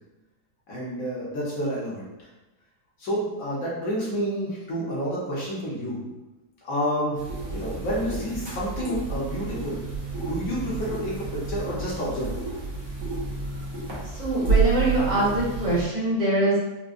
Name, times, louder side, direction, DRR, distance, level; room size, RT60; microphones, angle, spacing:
voice 1, 0.7-2.0 3.0-6.1 6.6-7.2 7.5-9.8 10.1-12.4, equal, 60° left, -6 dB, 1.3 m, -29 dB
sound 1, 7.1-15.8, right 5 dB, 60° right, 1.4 m, -30 dB
voice 2, 14.1-16.6, right 1 dB, 85° right, -9 dB, 2.0 m, -23 dB
4.7 x 2.2 x 2.5 m, 1.1 s
omnidirectional pair, 1.7 m